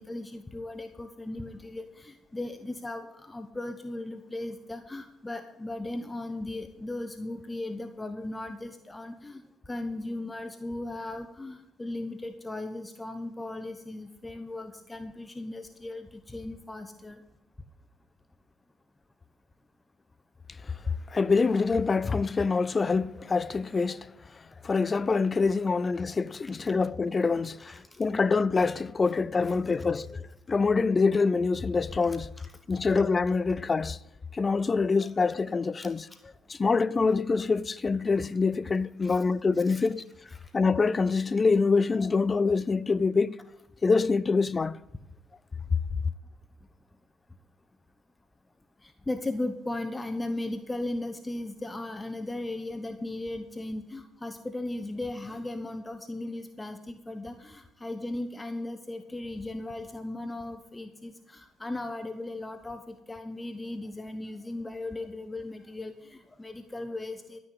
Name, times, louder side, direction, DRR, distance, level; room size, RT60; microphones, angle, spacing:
voice 1, 0.0-17.2 26.7-26.8 27.6-28.0 29.8-30.0 32.1-32.9 35.8-36.2 39.0-39.2 39.6-39.9 40.3-40.5 48.8-67.4, left 2 dB, 20° left, 1.0 m, -37 dB
voice 2, 21.1-24.1 24.6-30.2 30.5-32.3 32.7-34.0 34.3-36.1 36.5-40.1 40.5-43.4 43.8-44.8, left 4 dB, 35° left, 0.5 m, -25 dB
13.5 x 6.2 x 8.5 m
hypercardioid pair, 50°, 0 cm